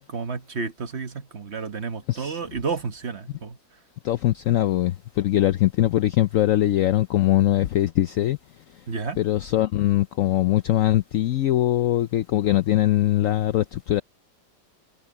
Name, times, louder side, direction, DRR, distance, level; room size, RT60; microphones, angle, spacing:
voice 1, 0.1-3.6 8.9-9.2, right 5 dB, 40° right, 1.1 m, -31 dB
voice 2, 2.1-2.4 4.0-8.4 9.2-14.0, left 14 dB, 90° left, 0.7 m, -21 dB
omnidirectional pair, 2.0 m